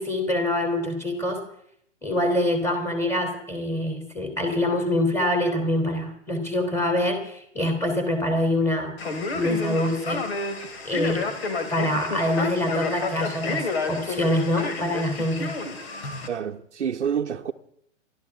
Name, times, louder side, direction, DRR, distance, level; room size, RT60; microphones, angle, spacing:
voice 1, 0.0-1.4 2.0-9.0 9.3-10.2 10.8-11.3 11.7-15.6, left 1 dB, 5° left, 3.3 m, -25 dB
Male speech man speaking, 9.0-16.3, left 3 dB, 55° left, 2.6 m, -30 dB
voice 2, 16.3-17.5, right 8 dB, 65° right, 0.9 m, -28 dB
29.0 x 12.5 x 3.6 m
figure-of-eight pair, 115°, 37 cm